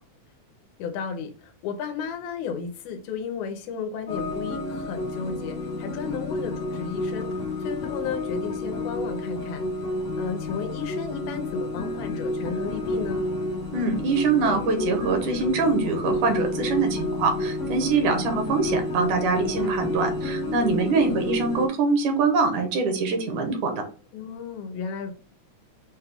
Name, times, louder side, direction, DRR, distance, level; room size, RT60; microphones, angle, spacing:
voice 1, 0.8-9.7 10.2-13.3 19.4-19.7 21.0-21.2 24.1-25.1, left 6 dB, 85° left, 2.2 m, -34 dB
sound 1, 4.1-21.7, left 2 dB, 60° left, 0.7 m, -30 dB
voice 2, 13.7-23.7, right 4 dB, 75° right, 2.5 m, -24 dB
6.2 x 2.3 x 3.4 m
omnidirectional pair, 3.5 m